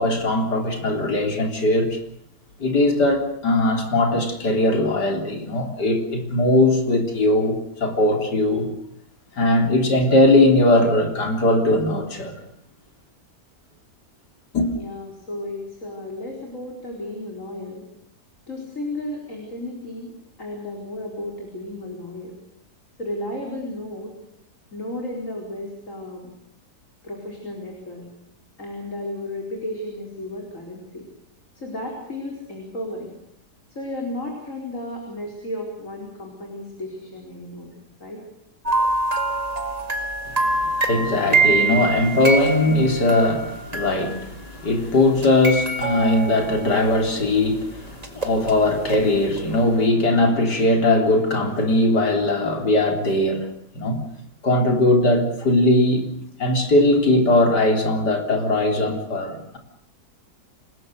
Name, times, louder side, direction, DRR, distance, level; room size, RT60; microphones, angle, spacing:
voice 1, 0.0-2.0 2.6-8.7 9.4-12.4 14.5-14.7 40.3-53.5 53.7-54.0 54.4-56.1 56.4-59.6, left 1 dB, 90° left, 4.3 m, -20 dB
voice 2, 14.7-17.8 18.5-20.1 20.4-22.3 23.0-24.1 24.7-26.3 27.0-28.0 28.6-31.0 31.5-33.1 33.7-37.7 38.0-38.2, left 1 dB, 50° left, 5.0 m, -33 dB
sound 1, 38.7-44.5 45.2-47.3 48.0-49.0 49.4-49.5, right 3 dB, 25° right, 2.1 m, -25 dB
28.0 x 20.0 x 6.6 m
omnidirectional pair, 1.7 m